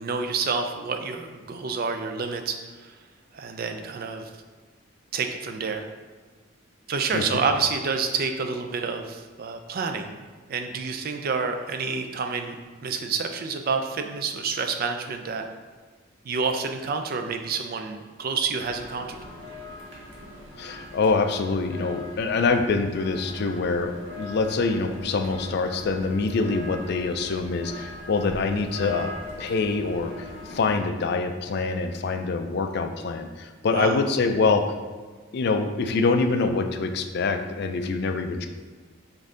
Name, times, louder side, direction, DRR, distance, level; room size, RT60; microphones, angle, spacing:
voice 1, 0.0-2.9 3.3-4.3 5.1-5.9 6.9-10.2 10.5-12.6 12.8-15.4 16.2-19.2 33.7-34.0, right 5 dB, 45° right, 6 dB, 0.4 m, -28 dB
sound 1, 18.6-30.8, left 2 dB, 70° right, 1.3 m, -41 dB
voice 2, 20.6-29.1 29.4-34.7 35.3-38.5, left 4 dB, 55° left, 6 dB, 0.4 m, -25 dB
5.2 x 2.6 x 3.7 m, 1.4 s
head